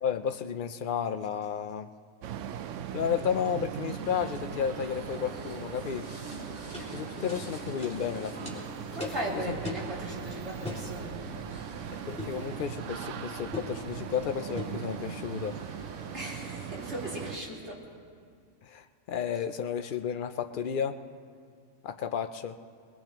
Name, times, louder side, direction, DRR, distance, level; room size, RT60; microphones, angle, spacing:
voice 1, 0.0-1.9 2.9-6.1 6.9-8.6 9.3-9.6 10.1-10.3 11.9-15.6 18.6-21.0 21.8-22.6, left 7 dB, 65° left, 9 dB, 0.5 m, -32 dB
sound 1, 2.2-17.4, right 9 dB, 70° right, 0.8 m, -40 dB
sound 2, 3.9-17.4, left 1 dB, 30° right, 3.5 m, -46 dB
sound 3, 6.3-6.4 6.7-6.9 7.3-7.4 7.8-8.0 8.5-8.6 9.0-9.2 9.6-9.9 10.6-10.9 12.2-12.4 13.5-13.8 14.6-14.8, left 2 dB, 5° left, 2.5 m, -38 dB
voice 2, 8.9-11.2 16.1-17.8, right 1 dB, 50° right, -5 dB, 3.0 m, -37 dB
23.0 x 20.0 x 3.0 m, 2.1 s
omnidirectional pair, 1.5 m